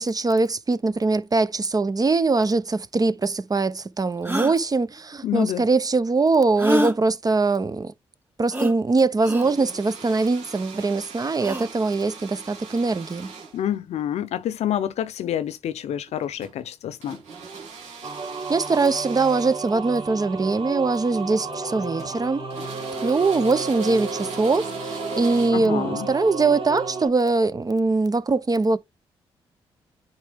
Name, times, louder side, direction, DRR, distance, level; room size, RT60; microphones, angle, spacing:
voice 1, 0.0-7.9 8.4-13.3 18.5-22.4 23.0-28.8, right 3 dB, 35° right, 0.8 m, -22 dB
sound 1, 3.2-3.3 4.2-4.6 6.6-7.0 8.5-8.7 9.2-9.5 11.3-11.7, equal, 15° right, 2.7 m, -25 dB
voice 2, 5.2-5.7 13.5-17.2 25.5-26.1, left 10 dB, 75° left, 0.7 m, -27 dB
sound 2, 9.4-13.8 16.1-16.6 17.0-19.7 20.7-20.9 21.4-22.3 22.5-25.5, right 5 dB, 75° right, 2.3 m, -40 dB
sound 3, 18.0-27.1, right 3 dB, 55° right, 2.2 m, -32 dB
8.8 x 4.7 x 3.6 m
supercardioid pair, 50°, 11 cm